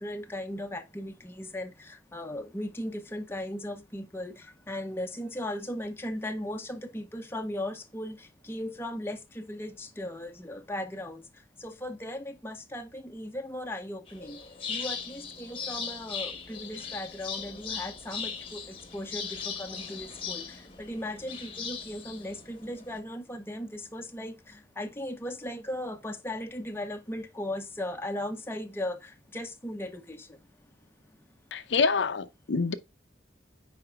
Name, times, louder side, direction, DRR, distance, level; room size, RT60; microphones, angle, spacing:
voice 1, 0.0-14.4 14.7-30.4 31.1-31.2, left 1 dB, 15° left, 0.7 m, -37 dB
sound 1, 14.1-23.0, left 6 dB, 30° left, 1.0 m, -39 dB
voice 2, 31.5-32.7, left 4 dB, 80° left, 0.6 m, -26 dB
9.6 x 4.3 x 2.3 m
head